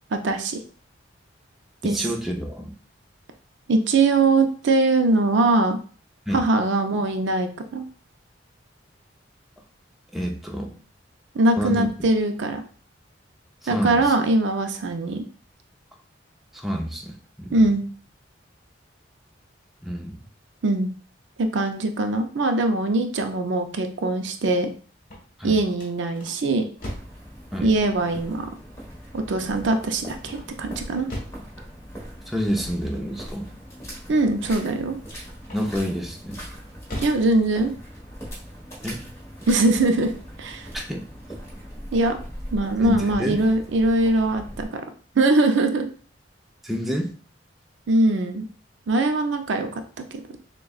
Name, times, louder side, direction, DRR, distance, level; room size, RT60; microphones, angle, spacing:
voice 1, 0.1-0.6 1.8-2.1 3.7-5.8 6.3-7.8 11.3-12.6 13.7-15.2 17.5-17.8 20.6-20.9 21.4-24.7 25.4-26.7 27.6-28.5 29.1-31.1 34.1-35.0 37.0-37.7 39.5-40.1 40.4-40.7 41.9-42.2 42.5-44.8 45.1-45.9 47.9-48.5 48.9-49.8 50.1-50.4, right 2 dB, 70° right, 6 dB, 0.5 m, -22 dB
voice 2, 1.8-2.7 6.3-6.4 10.1-10.7 11.6-11.9 13.7-14.1 16.5-17.6 19.8-20.2 25.4-25.6 27.5-27.7 32.3-33.5 35.5-36.4 38.8-39.0 40.7-41.1 42.8-43.4 46.6-47.1, equal, ahead, 0 dB, 0.6 m, -28 dB
sound 1, 24.9-27.2 30.2-31.5 35.4-36.0 36.5-37.3, equal, 45° left, 1.3 m, -38 dB
sound 2, 26.8-44.7, equal, 15° left, 1.2 m, -40 dB
6.4 x 2.2 x 2.4 m, 0.41 s
head